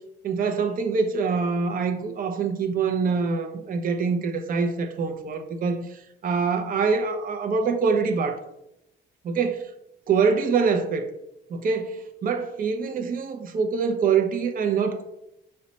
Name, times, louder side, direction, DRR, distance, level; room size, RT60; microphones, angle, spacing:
voice 1, 0.2-8.4 9.2-9.6 10.1-11.1 11.5-15.0, right 5 dB, 45° right, 0.5 m, -25 dB
4.9 x 2.1 x 4.0 m
cardioid pair, 90°, 20 cm